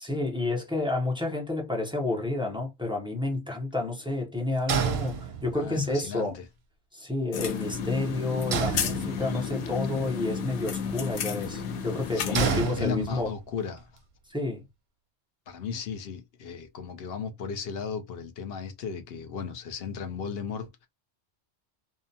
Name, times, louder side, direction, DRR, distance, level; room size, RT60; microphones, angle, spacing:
voice 1, 0.0-6.4 6.9-13.3 14.3-14.7, left 2 dB, 5° right, 0.4 m, -30 dB
sound 1, 4.7-5.8 8.5-9.5 12.3-13.5, right 6 dB, 70° right, 0.8 m, -29 dB
voice 2, 5.5-6.4 12.1-13.9 15.5-20.9, left 6 dB, 70° left, 0.8 m, -35 dB
sound 2, 7.3-12.7, left 6 dB, 90° left, 0.9 m, -32 dB
2.7 x 2.1 x 2.6 m
omnidirectional pair, 1.1 m